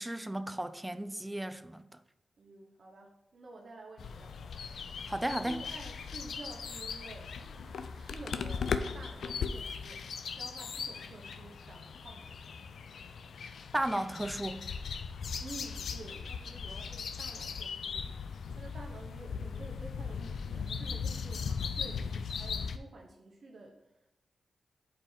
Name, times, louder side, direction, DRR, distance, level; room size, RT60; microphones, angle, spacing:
voice 1, 0.0-1.8 5.1-5.6 13.7-14.7, right 1 dB, 10° right, 0.5 m, -34 dB
voice 2, 2.4-4.3 5.4-10.0 10.4-12.3 15.4-23.8, right 2 dB, 65° right, 0.9 m, -50 dB
sound 1, 4.0-22.8, left 6 dB, 80° left, 0.4 m, -38 dB
5.2 x 4.4 x 5.5 m
cardioid pair, 50°, 0 cm